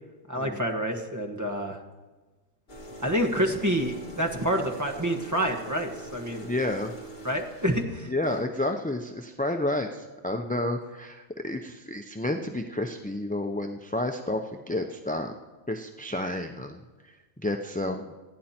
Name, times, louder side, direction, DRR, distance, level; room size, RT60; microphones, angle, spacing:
voice 1, 0.3-1.8 3.0-6.5 7.2-8.1, equal, 15° right, 3 dB, 1.5 m, -28 dB
sound 1, 2.7-7.8, right 2 dB, 55° left, 2.0 m, -43 dB
voice 2, 6.4-6.9 8.1-15.3 15.7-18.2, left 1 dB, 10° left, 4 dB, 0.5 m, -31 dB
27.5 x 10.0 x 4.4 m, 1.2 s
omnidirectional pair, 1.3 m